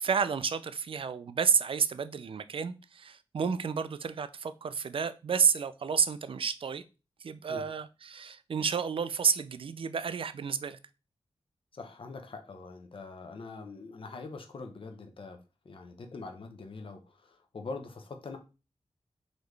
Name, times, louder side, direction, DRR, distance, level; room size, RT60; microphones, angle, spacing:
voice 1, 0.0-6.8 7.2-10.8, right 6 dB, 60° right, 0.4 m, -30 dB
voice 2, 11.7-15.4 15.6-18.4, left 3 dB, 60° left, 0.7 m, -43 dB
3.9 x 3.1 x 3.3 m
wide cardioid pair, 80°, 10 cm